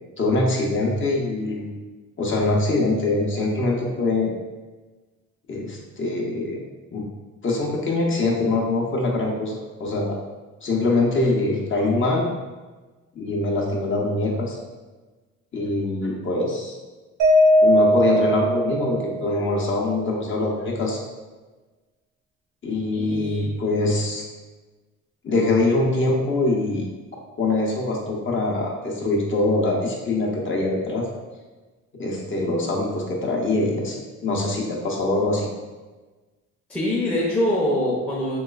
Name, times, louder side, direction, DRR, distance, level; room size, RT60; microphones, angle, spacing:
voice 1, 0.2-1.8 2.2-4.3 5.5-6.6 6.9-7.1 7.4-10.2 10.6-12.3 13.2-14.6 15.5-16.7 17.6-21.0 22.6-24.2 25.2-26.9 27.4-31.1 31.9-35.5, left 2 dB, 40° left, -2 dB, 0.7 m, -23 dB
Mallet percussion, 17.2-19.5, equal, 80° right, 0.6 m, -18 dB
voice 2, 22.9-23.5 36.7-38.4, left 1 dB, 5° left, -6 dB, 0.5 m, -24 dB
3.0 x 3.0 x 2.3 m, 1.3 s
cardioid pair, 90°, 30 cm